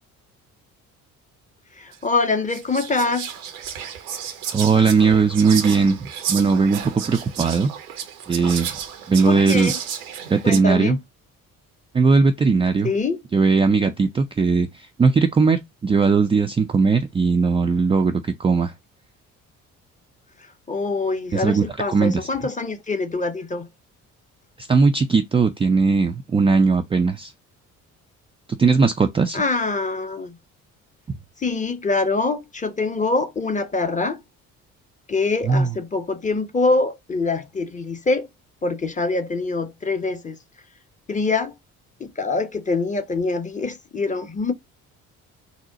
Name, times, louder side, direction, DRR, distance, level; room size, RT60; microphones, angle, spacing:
voice 1, 1.8-3.3 9.3-9.8 10.4-11.0 12.8-13.2 20.7-23.7 29.3-30.4 31.4-34.2 35.1-38.3 38.6-40.4 41.1-41.5 42.0-44.5, left 3 dB, 20° left, 0.7 m, -24 dB
Whispering, 1.9-2.0 2.5-10.6, right 8 dB, 80° right, 0.8 m, -32 dB
voice 2, 4.5-7.7 8.3-8.7 9.1-9.7 10.3-11.0 11.9-12.9 13.3-18.7 21.3-21.6 21.9-22.2 24.6-27.3 28.6-29.4 35.4-35.7, right 4 dB, 15° right, 0.4 m, -18 dB
4.1 x 2.2 x 3.7 m
figure-of-eight pair, 45°, 43 cm